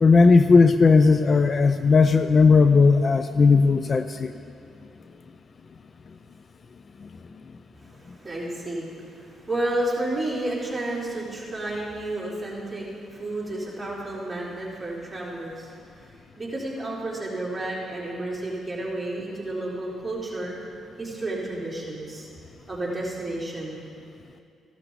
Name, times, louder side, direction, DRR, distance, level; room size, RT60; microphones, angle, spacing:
voice 1, 0.0-4.3 7.0-7.1, left 4 dB, 40° left, 10 dB, 0.4 m, -17 dB
voice 2, 7.8-16.0 16.4-20.5 21.0-22.3 22.7-23.8, right 1 dB, 15° right, -6 dB, 4.0 m, -31 dB
15.5 x 12.5 x 4.1 m, 2.5 s
cardioid pair, 90°, 0 cm